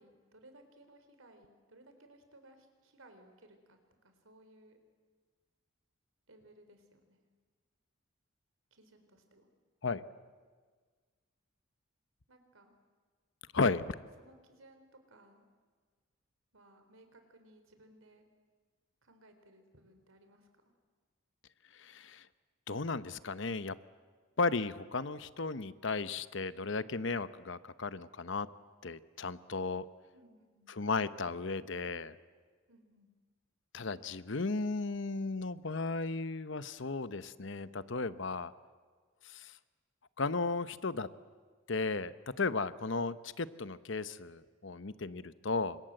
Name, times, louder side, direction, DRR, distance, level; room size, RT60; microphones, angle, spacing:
voice 1, 0.0-3.8 4.0-4.8 6.3-7.2 8.7-9.5 12.3-12.8 14.2-15.5 16.5-18.2 19.0-20.5 30.1-30.8 32.7-33.1, right 1 dB, 85° right, 7 dB, 4.2 m, -61 dB
voice 2, 13.5-13.9 21.8-22.2 22.7-23.8 24.4-28.5 28.8-29.8 30.8-32.2 33.7-38.5 39.2-39.5 40.2-41.1 41.7-45.8, left 3 dB, 65° left, 14 dB, 0.9 m, -35 dB
29.5 x 25.5 x 7.8 m, 1.5 s
head